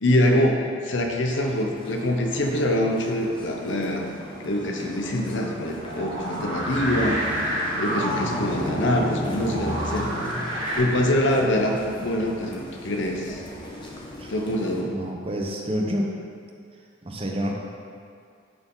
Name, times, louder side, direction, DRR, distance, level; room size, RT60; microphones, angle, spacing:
voice 1, 0.0-4.1 4.4-7.5 7.8-10.1 10.8-13.4 14.3-14.9, left 1 dB, 70° left, 2 dB, 0.8 m, -24 dB
sound 1, 1.3-14.8, left 1 dB, 25° left, 0.9 m, -35 dB
sound 2, 5.8-10.8, right 1 dB, 80° right, 2.0 m, -30 dB
voice 2, 14.9-16.1 17.0-17.5, equal, 30° right, 0 dB, 0.8 m, -28 dB
11.0 x 4.3 x 3.8 m, 2.2 s
head